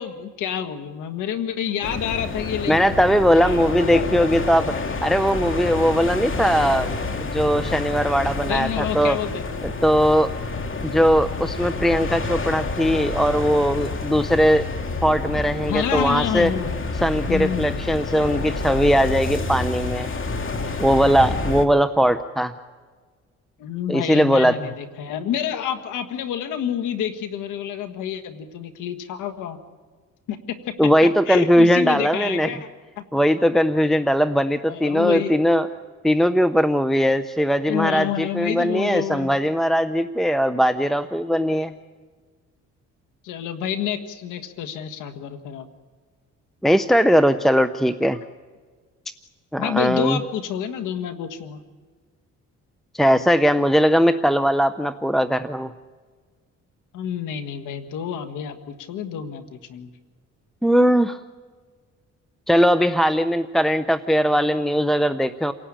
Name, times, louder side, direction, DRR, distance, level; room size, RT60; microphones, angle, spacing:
voice 1, 0.0-2.8 3.3-4.3 8.4-9.5 15.7-16.9 17.3-17.8 23.6-29.6 30.3-30.7 31.0-32.7 33.0-33.1 34.7-35.4 37.7-39.3 43.2-45.7 49.6-51.6 56.9-59.9, left 9 dB, 85° left, 8 dB, 1.7 m, -28 dB
sound 1, 1.8-21.6, left 3 dB, 40° left, 2.4 m, -28 dB
voice 2, 2.7-4.7 5.0-6.9 7.2-9.2 9.8-10.3 10.8-14.7 15.0-16.5 17.0-20.1 20.8-22.5 23.9-24.6 30.8-32.5 33.1-35.7 36.0-41.7 46.6-48.2 49.5-50.2 52.9-55.7 60.6-61.2 62.5-65.5, equal, ahead, 11 dB, 0.8 m, -19 dB
29.0 x 18.0 x 8.8 m, 1.5 s
cardioid pair, 90°, 30 cm